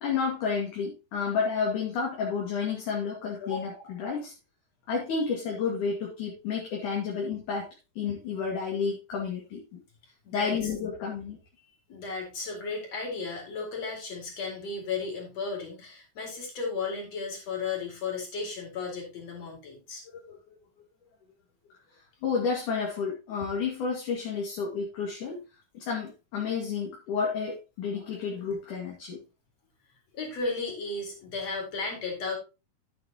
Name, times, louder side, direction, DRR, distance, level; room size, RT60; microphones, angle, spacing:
voice 1, 0.0-4.3 4.9-7.7 8.0-9.8 10.3-11.4 20.1-20.6 22.2-25.4 25.7-29.2, left 5 dB, 65° left, -2 dB, 3.6 m, -31 dB
voice 2, 11.9-20.0 30.1-32.4, left 4 dB, 45° left, 0 dB, 5.1 m, -34 dB
11.5 x 9.5 x 3.0 m, 0.28 s
omnidirectional pair, 4.0 m